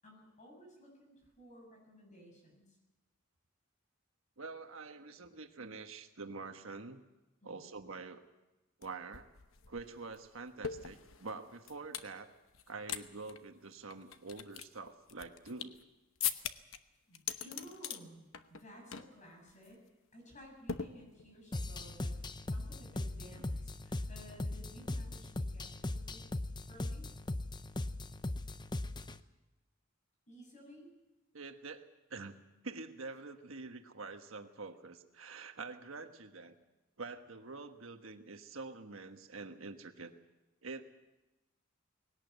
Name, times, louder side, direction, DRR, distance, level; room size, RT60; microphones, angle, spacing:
voice 1, 0.0-2.6 7.4-7.7 17.1-19.8 20.1-22.1 22.5-26.2 26.7-27.1 30.3-30.9, equal, 35° left, 2 dB, 7.6 m, -55 dB
voice 2, 4.4-7.0 7.4-8.2 8.8-9.3 9.7-12.3 12.7-15.8 31.3-31.8 32.1-32.4 32.6-36.6 37.0-40.1 40.6-40.9, right 3 dB, 75° right, 6 dB, 1.4 m, -46 dB
sound 1, 8.8-8.9 9.1-12.1 12.5-13.0 13.3-13.4 13.9-15.8 16.2-16.8 17.1-18.0 18.3-18.6 18.9-19.2 19.5-19.7 20.7-21.4, left 8 dB, 70° left, 1.0 m, -40 dB
sound 2, 21.5-29.2, left 2 dB, 20° left, 0.7 m, -39 dB
20.0 x 17.5 x 8.1 m, 1.1 s
head